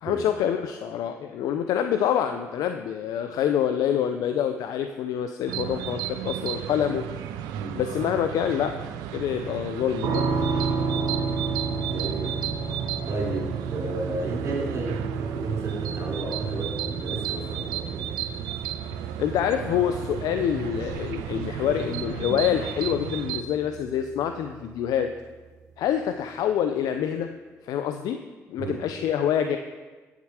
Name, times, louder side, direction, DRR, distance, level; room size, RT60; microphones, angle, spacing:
voice 1, 0.0-7.0 7.8-8.8 9.1-10.3 18.9-25.1 25.8-27.3 27.6-28.2 28.5-29.6, left 9 dB, 70° left, 8 dB, 0.4 m, -26 dB
sound 1, 5.5-23.4, right 10 dB, 80° right, 0.5 m, -34 dB
voice 2, 7.5-7.8 10.7-11.1 11.9-12.4 13.1-18.1 28.6-28.8, right 3 dB, 50° right, -7 dB, 2.9 m, -32 dB
sound 2, 10.0-24.9, right 4 dB, 65° right, 1.3 m, -32 dB
8.4 x 7.3 x 4.7 m, 1.3 s
hypercardioid pair, 55°, 7 cm